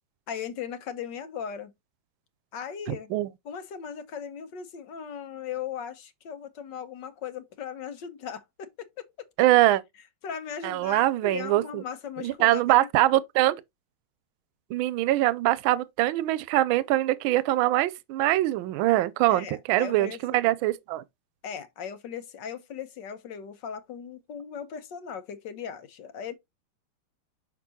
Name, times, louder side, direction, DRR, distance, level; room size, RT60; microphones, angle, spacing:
voice 1, 0.3-1.7 2.5-3.1 3.4-9.1 10.2-12.9 19.3-20.4 21.4-26.3, left 7 dB, 65° left, 1.4 m, -38 dB
voice 2, 9.4-9.8 10.6-11.8 12.2-13.6 14.7-21.0, right 16 dB, 80° right, 1.4 m, -23 dB
6.1 x 6.0 x 2.8 m
omnidirectional pair, 2.3 m